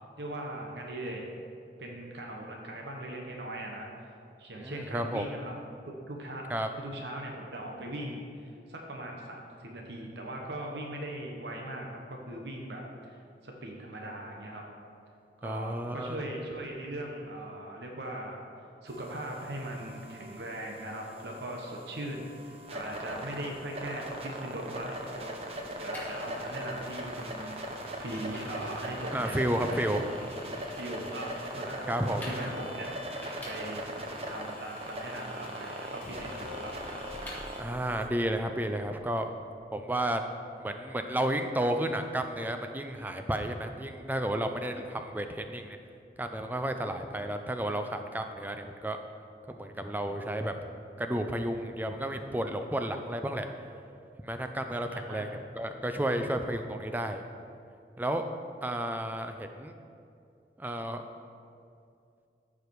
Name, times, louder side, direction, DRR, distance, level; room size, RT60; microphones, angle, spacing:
voice 1, 0.2-1.3 1.8-3.9 4.4-5.5 6.1-6.5 6.7-13.2 13.4-14.7 15.4-18.4 18.8-30.1 30.8-33.8 34.3-36.7 54.9-55.3, right 1 dB, 75° right, 0 dB, 1.1 m, -40 dB
voice 2, 4.6-5.3 6.5-6.7 15.4-16.2 29.1-30.0 31.9-32.2 37.6-39.3 39.7-40.2 40.6-45.8 46.2-49.0 49.5-50.5 51.0-53.5 54.2-55.3 55.6-57.2 58.0-58.3 58.6-59.7 60.6-61.0, right 1 dB, 10° right, 6 dB, 0.4 m, -32 dB
sound 1, 18.9-38.1, right 1 dB, 35° right, 0.8 m, -40 dB
Vehicle, 25.9-37.6, left 1 dB, 10° left, 1.7 m, -49 dB
sound 2, 36.0-39.6 39.9-40.0, left 3 dB, 45° left, 0.8 m, -47 dB
14.0 x 5.0 x 4.7 m, 2.5 s
head